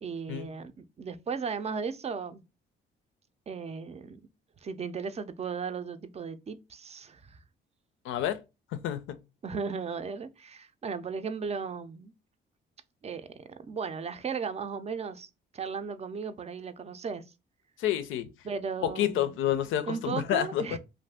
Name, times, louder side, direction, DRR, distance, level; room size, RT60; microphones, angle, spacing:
voice 1, 0.0-2.4 3.5-4.2 4.6-7.4 9.4-12.1 13.0-17.2 18.4-19.3 19.9-20.8, right 5 dB, 30° right, 0.4 m, -36 dB
voice 2, 8.0-8.4 8.7-9.2 17.8-18.3 18.8-20.6, left 11 dB, 80° left, 0.5 m, -29 dB
2.6 x 2.4 x 3.4 m
cardioid pair, 90°, 20 cm